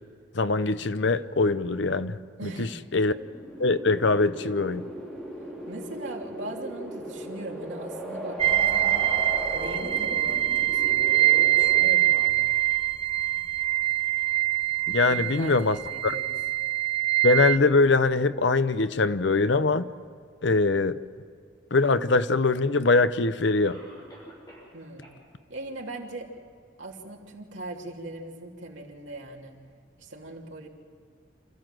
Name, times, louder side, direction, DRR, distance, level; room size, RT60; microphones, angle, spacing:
voice 1, 0.3-3.1 3.6-4.8 14.9-15.8 16.0-16.1 17.2-19.9 20.4-21.0 21.7-23.8, left 3 dB, 75° left, 12 dB, 0.8 m, -23 dB
voice 2, 2.4-2.7 5.4-9.1 9.5-12.5 15.0-16.3 24.7-25.1 25.5-26.3 26.8-29.5 30.0-30.7, right 1 dB, 80° right, -1 dB, 3.0 m, -40 dB
Impending Storms, 3.1-11.9, right 1 dB, 5° left, 3.9 m, -38 dB
sound 1, 8.4-17.6, right 14 dB, 30° right, 0.6 m, -24 dB
Cough, 23.6-24.8 25.0-25.1 25.7-25.8 26.3-26.4, equal, 20° left, 6.7 m, -48 dB
27.5 x 14.5 x 7.7 m, 2.2 s
head